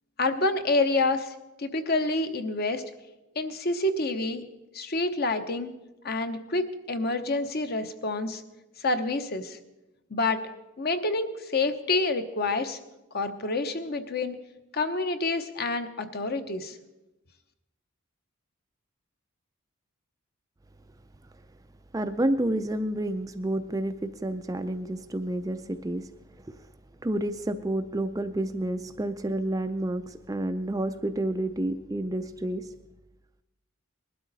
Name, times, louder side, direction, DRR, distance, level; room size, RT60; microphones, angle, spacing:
voice 1, 0.2-2.8 3.4-4.4 4.7-5.8 6.0-8.4 8.8-9.6 10.1-10.4 10.8-12.8 13.1-14.4 14.7-16.8, left 2 dB, 45° left, 8 dB, 0.9 m, -28 dB
voice 2, 21.9-26.1 26.5-26.6 27.0-32.7, right 1 dB, 15° right, 9 dB, 0.4 m, -29 dB
20.0 x 12.0 x 4.0 m, 1.0 s
head